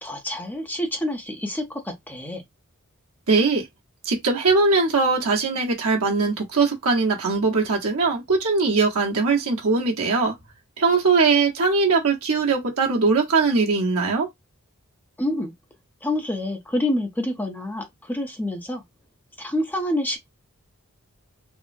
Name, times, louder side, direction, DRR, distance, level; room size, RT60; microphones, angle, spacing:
voice 1, 0.0-2.4 15.2-15.5 16.0-18.8 19.4-20.2, left 1 dB, 10° left, 0.6 m, -27 dB
voice 2, 3.3-3.7 4.0-10.4 10.8-14.3, right 4 dB, 75° right, 1.0 m, -21 dB
3.6 x 2.0 x 2.5 m
head